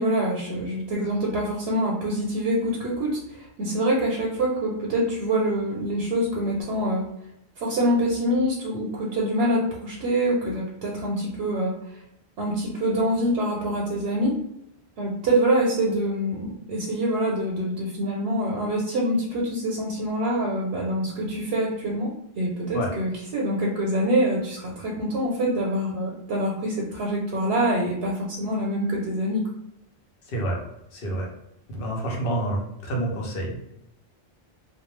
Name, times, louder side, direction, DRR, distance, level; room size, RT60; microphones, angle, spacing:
voice 1, 0.0-7.1 7.6-11.8 12.4-14.4 15.0-22.1 22.4-29.4, right 1 dB, 90° right, -3 dB, 0.9 m, -25 dB
voice 2, 30.3-30.6 30.9-31.3 31.7-33.6, right 1 dB, 60° left, -1 dB, 0.9 m, -28 dB
2.3 x 2.1 x 3.1 m, 0.83 s
omnidirectional pair, 1.1 m